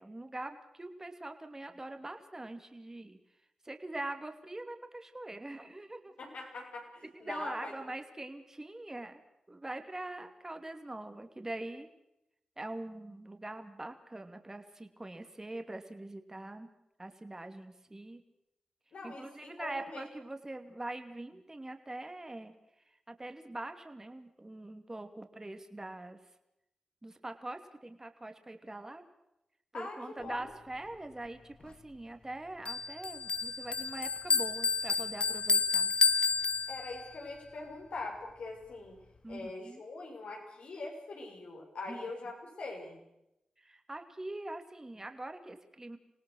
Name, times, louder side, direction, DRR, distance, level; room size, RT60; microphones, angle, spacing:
voice 1, 0.0-3.2 3.6-6.1 7.1-9.2 9.5-11.9 12.6-16.7 17.0-18.2 19.0-22.5 23.1-26.2 27.0-29.0 29.7-35.9 39.2-39.8 41.9-42.0 43.6-46.0, right 2 dB, 25° right, 7 dB, 2.6 m, -43 dB
voice 2, 6.2-7.7 18.9-20.0 29.7-30.4 36.7-39.0 39.3-43.0, left 3 dB, 75° left, 0 dB, 6.6 m, -43 dB
Bell, 32.7-37.2, left 4 dB, 50° left, 1.0 m, -30 dB
27.0 x 18.0 x 6.5 m, 0.86 s
cardioid pair, 45°, 2 cm